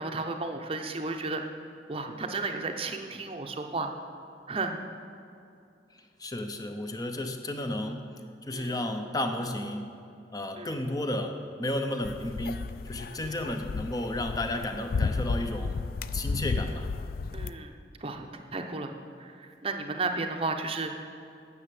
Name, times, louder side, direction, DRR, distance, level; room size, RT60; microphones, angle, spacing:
voice 1, 0.0-1.4 1.9-3.9 4.5-4.8 8.5-8.8 10.6-10.8 13.2-13.4 17.3-17.7 18.0-18.3 18.5-21.1, right 3 dB, 30° right, 5 dB, 0.7 m, -33 dB
voice 2, 6.0-8.1 8.4-9.9 10.3-15.8 16.1-16.9, left 1 dB, 20° left, 6 dB, 0.7 m, -33 dB
sound 1, 12.0-17.5, left 4 dB, 50° left, 0.3 m, -33 dB
9.8 x 6.9 x 7.6 m, 2.5 s
head